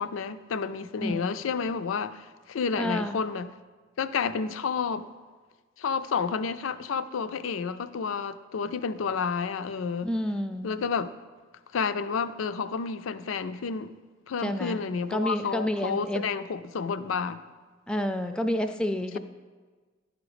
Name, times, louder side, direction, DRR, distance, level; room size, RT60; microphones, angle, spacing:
voice 1, 0.0-3.5 4.0-5.1 5.8-10.1 10.6-11.1 11.7-13.9 14.3-17.4, left 5 dB, 80° left, 0.4 m, -30 dB
voice 2, 1.0-1.3 2.8-3.2 10.0-10.7 14.4-14.8 15.1-16.3 17.9-19.2, left 1 dB, 5° left, 0.3 m, -29 dB
11.0 x 5.1 x 4.9 m
head